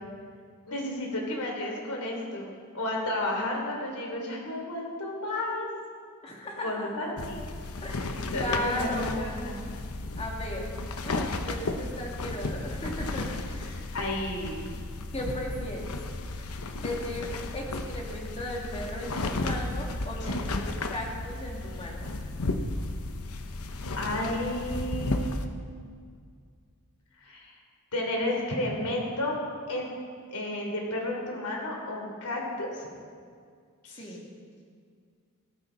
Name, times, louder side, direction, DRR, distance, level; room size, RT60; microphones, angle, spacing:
voice 1, 0.7-2.5 2.7-5.7 6.6-7.4 8.1-8.9 9.2-9.6 13.9-14.7 24.0-25.5 27.2-27.5 27.9-29.4 29.7-29.9 30.3-32.9 33.8-34.0, left 1 dB, 90° left, 0 dB, 3.4 m, -32 dB
voice 2, 6.2-7.1 7.8-9.4 10.2-10.7 11.0-13.9 15.1-16.0 16.8-22.1 33.9-34.3, left 1 dB, 30° left, -1 dB, 2.4 m, -36 dB
sound 1, 7.2-25.5, left 2 dB, 70° left, 0.9 m, -34 dB
17.0 x 13.5 x 4.0 m, 2.1 s
head